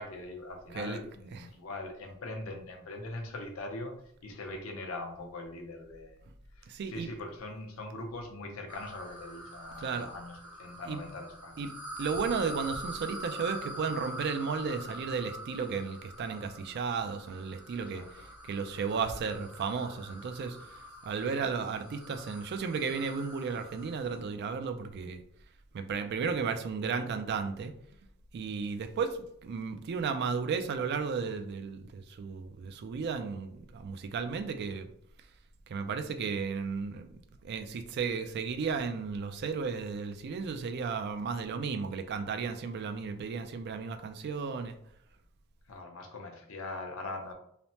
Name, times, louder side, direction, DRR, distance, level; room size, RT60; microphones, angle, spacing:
voice 1, 0.0-4.0 4.2-6.2 6.5-11.7 17.8-18.3 45.7-47.3, left 2 dB, 75° left, 3 dB, 0.6 m, -42 dB
voice 2, 6.7-7.1 9.8-10.1 10.9-11.0 11.6-11.7 12.0-18.0 18.4-20.6 21.0-25.2 25.7-27.8 28.3-34.9 35.7-37.1 37.4-44.7, right 5 dB, 50° right, 8 dB, 0.3 m, -34 dB
sound 1, 8.7-24.3, equal, 85° right, 1.0 m, -45 dB
3.2 x 2.0 x 2.7 m, 0.70 s
head